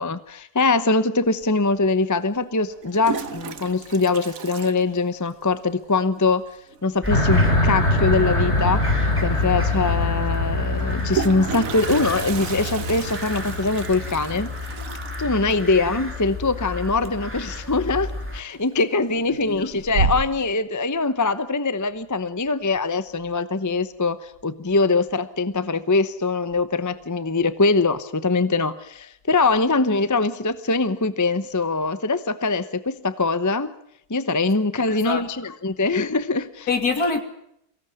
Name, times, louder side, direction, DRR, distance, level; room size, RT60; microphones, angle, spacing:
voice 1, 0.0-6.5 6.8-8.8 9.2-14.5 15.2-33.7 34.1-36.7, left 3 dB, 15° left, 13 dB, 0.6 m, -23 dB
Toilet flush, 1.4-1.5 2.7-5.5 5.8-5.9 6.2-6.3 6.5-6.9 8.7-8.8 9.1-9.2 10.7-17.4 17.7-18.2 18.6-19.1 19.5-20.5, right 5 dB, 55° right, 1.5 m, -31 dB
sound 1, 7.0-18.4, left 3 dB, 5° right, 2.4 m, -30 dB
sound 2, 7.1-14.6, left 1 dB, 40° left, 3.3 m, -24 dB
voice 2, 34.9-35.3 36.7-37.2, left 4 dB, 60° left, 6 dB, 3.2 m, -25 dB
23.5 x 17.0 x 9.2 m, 0.75 s
omnidirectional pair, 1.8 m